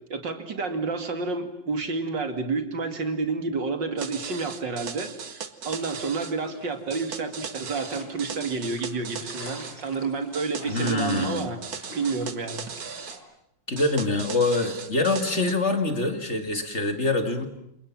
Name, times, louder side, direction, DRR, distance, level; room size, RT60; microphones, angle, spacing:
voice 1, 0.1-11.6 11.9-12.7, right 4 dB, 70° right, 7 dB, 3.1 m, -30 dB
sound 1, 4.0-6.3 6.9-9.8 10.3-13.2 13.8-15.5, right 6 dB, 55° right, 1.8 m, -38 dB
sound 2, 5.7-13.1, left 1 dB, 85° left, 5.8 m, -47 dB
voice 2, 10.7-11.4 13.7-17.5, left 2 dB, 35° left, 7 dB, 2.7 m, -25 dB
29.0 x 27.5 x 7.5 m, 0.74 s
omnidirectional pair, 2.0 m